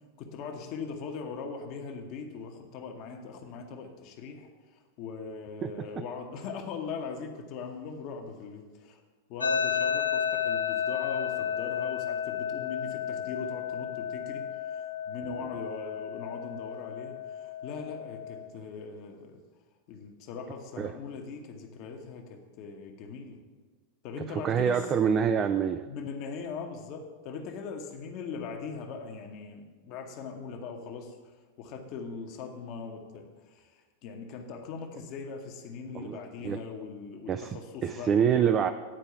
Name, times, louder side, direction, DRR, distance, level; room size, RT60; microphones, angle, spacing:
voice 1, 0.2-9.0 9.3-19.4 19.9-23.4 24.0-24.9 25.9-38.6, left 5 dB, 40° left, 4 dB, 1.0 m, -40 dB
sound 1, 9.4-18.5, left 8 dB, 80° left, 0.5 m, -32 dB
voice 2, 24.3-25.8 35.9-36.2 36.4-36.6 37.3-37.6 37.8-38.7, right 7 dB, 25° right, 9 dB, 0.3 m, -26 dB
8.8 x 4.6 x 6.6 m, 1.4 s
figure-of-eight pair, 90°, 0 cm